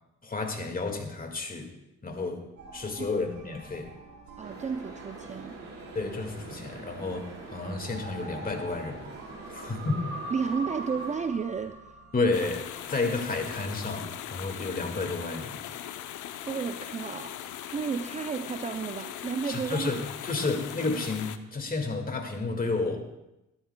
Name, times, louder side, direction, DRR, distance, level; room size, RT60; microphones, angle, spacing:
voice 1, 0.2-1.7 2.0-2.5 2.7-3.9 5.9-9.1 9.5-10.0 12.1-15.7 19.4-23.2, left 3 dB, 30° left, 4 dB, 1.8 m, -31 dB
sound 1, 2.6-13.6, right 2 dB, 85° right, 3.2 m, -45 dB
voice 2, 4.4-5.6 9.5-9.7 10.3-12.0 16.5-17.4 17.7-19.9, right 5 dB, 25° right, 8 dB, 0.4 m, -32 dB
sound 2, 4.4-11.2, right 3 dB, 50° right, 4.4 m, -45 dB
sound 3, 12.3-21.4, left 11 dB, 80° left, 0.6 m, -40 dB
13.0 x 12.0 x 2.2 m, 0.93 s
cardioid pair, 90°, 30 cm